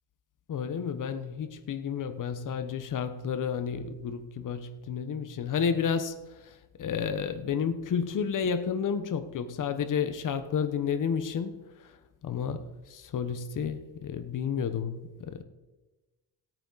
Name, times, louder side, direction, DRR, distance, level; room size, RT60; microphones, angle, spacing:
voice 1, 0.5-6.2 6.4-12.0 12.2-15.4, left 7 dB, 50° left, 1.1 m, -31 dB
16.5 x 9.1 x 4.1 m
cardioid pair, 120°, 41 cm